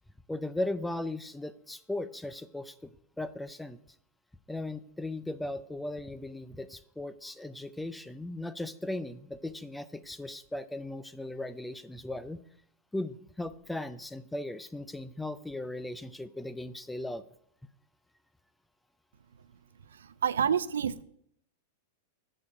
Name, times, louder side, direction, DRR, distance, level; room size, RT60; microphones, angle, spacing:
voice 1, 0.3-2.9 3.2-3.8 4.5-12.4 12.9-17.2, left 1 dB, 5° left, 14 dB, 0.4 m, -37 dB
voice 2, 19.9-21.0, right 8 dB, 85° right, 15 dB, 0.4 m, -29 dB
7.1 x 6.6 x 5.3 m, 0.71 s
hypercardioid pair, 110°, 0 cm